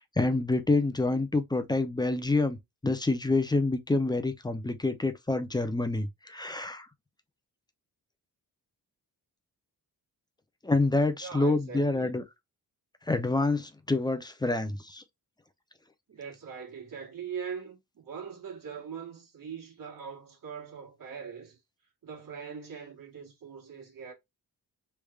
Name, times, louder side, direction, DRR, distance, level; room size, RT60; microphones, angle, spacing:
voice 1, 0.2-2.6 2.8-6.9 10.6-12.2 13.1-15.0, left 2 dB, 10° left, 0.4 m, -27 dB
voice 2, 11.2-12.2 16.1-21.6 22.0-24.1, right 6 dB, 60° right, 1.5 m, -41 dB
3.3 x 3.3 x 2.2 m
wide cardioid pair, 160°, 38 cm